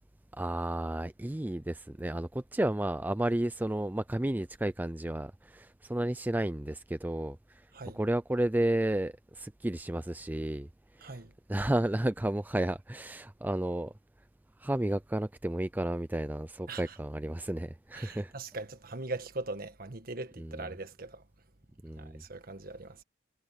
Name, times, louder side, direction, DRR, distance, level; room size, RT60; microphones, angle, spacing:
voice 1, 0.3-7.6 7.9-10.7 10.9-11.2 11.5-13.9 14.6-18.3 20.4-20.6 21.8-22.2, right 1 dB, 10° right, 0.4 m, -32 dB
voice 2, 11.0-11.3 16.7-17.0 17.9-21.2 22.0-23.0, right 2 dB, 50° right, 1.6 m, -41 dB
head